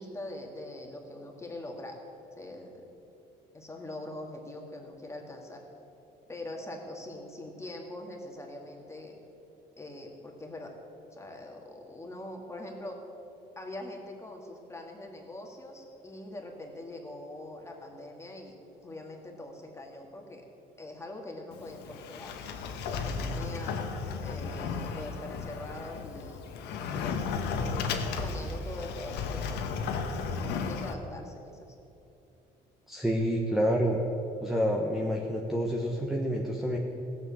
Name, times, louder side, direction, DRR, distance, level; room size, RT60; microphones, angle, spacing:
voice 1, 0.0-2.0 2.4-2.9 3.5-5.6 6.3-9.1 9.8-10.8 11.1-13.0 13.6-18.5 18.8-20.4 20.8-22.4 22.7-23.8 24.2-26.4 26.7-27.2 27.5-29.7 30.3-31.6, left 1 dB, 15° left, 1 dB, 2.1 m, -43 dB
Sliding door, 21.5-30.9, left 5 dB, 85° left, 1.1 m, -34 dB
voice 2, 32.9-34.0 34.4-36.8, equal, ahead, -1 dB, 1.1 m, -28 dB
15.5 x 7.2 x 7.1 m, 2.9 s
cardioid pair, 110°, 17 cm